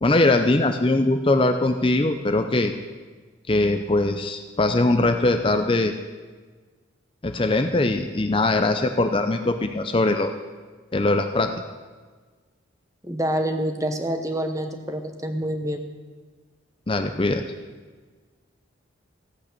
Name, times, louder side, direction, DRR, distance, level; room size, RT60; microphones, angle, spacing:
voice 1, 0.0-2.7 3.5-5.9 7.2-10.3 10.9-11.5 16.9-17.4, left 2 dB, 25° left, 7 dB, 0.5 m, -21 dB
voice 2, 13.0-15.9, right 1 dB, 15° right, 6 dB, 1.0 m, -27 dB
15.0 x 8.8 x 6.7 m, 1.4 s
head